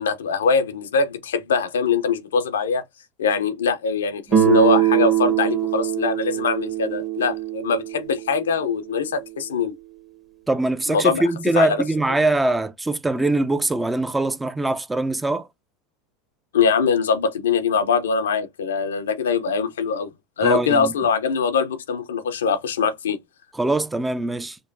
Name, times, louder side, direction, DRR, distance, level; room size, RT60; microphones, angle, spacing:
voice 1, 0.0-2.8 3.2-9.7 10.9-11.2 11.6-11.8 16.5-20.1 20.4-23.2, left 5 dB, 85° left, 0.6 m, -22 dB
Guitar, 4.3-9.1, right 11 dB, 30° right, 1.1 m, -23 dB
voice 2, 10.5-15.5 20.4-20.9 23.5-24.6, right 2 dB, 10° right, 0.5 m, -22 dB
5.2 x 2.2 x 2.5 m
hypercardioid pair, 90°, 0 cm